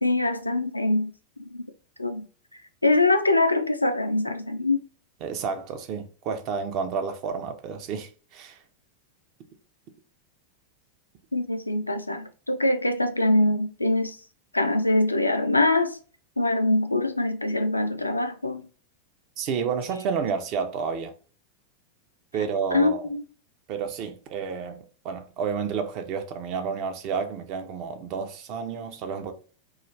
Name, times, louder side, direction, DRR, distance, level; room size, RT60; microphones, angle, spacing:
voice 1, 0.0-1.1 1.4-1.6 2.0-2.3 2.8-4.8 11.3-14.2 14.5-16.0 16.4-18.7 22.7-23.2, left 2 dB, 85° left, 0.3 m, -23 dB
voice 2, 5.2-8.6 19.4-21.1 22.3-23.0 23.7-29.3, right 6 dB, 40° right, 0.5 m, -30 dB
2.4 x 2.3 x 3.1 m
figure-of-eight pair, 90°, 0 cm